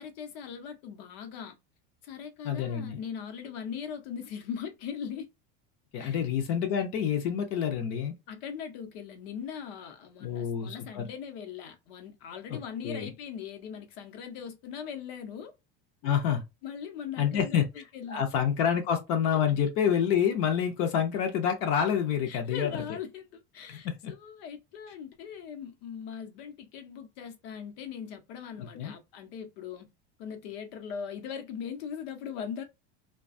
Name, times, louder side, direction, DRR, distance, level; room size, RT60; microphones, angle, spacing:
voice 1, 0.0-1.6 2.0-5.3 6.0-6.2 8.3-15.5 16.6-18.2 22.3-29.9 30.2-32.6, left 7 dB, 85° left, 0.8 m, -40 dB
voice 2, 2.4-3.0 5.9-8.1 10.2-11.1 12.5-12.6 12.8-13.1 16.0-16.4 17.2-17.7 18.1-22.7 23.7-24.1 28.6-28.9, left 8 dB, 45° left, 0.5 m, -28 dB
2.4 x 2.2 x 2.4 m
cardioid pair, 175°, 30 cm